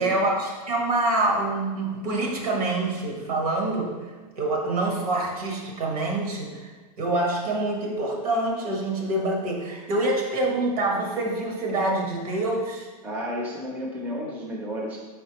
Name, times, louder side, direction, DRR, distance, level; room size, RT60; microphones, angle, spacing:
voice 1, 0.0-3.9 4.4-6.7 7.0-12.9, right 2 dB, 75° right, 0 dB, 1.2 m, -26 dB
voice 2, 13.0-15.0, equal, 10° right, -2 dB, 0.5 m, -32 dB
4.4 x 4.1 x 2.9 m, 1.3 s
supercardioid pair, 155°, 19 cm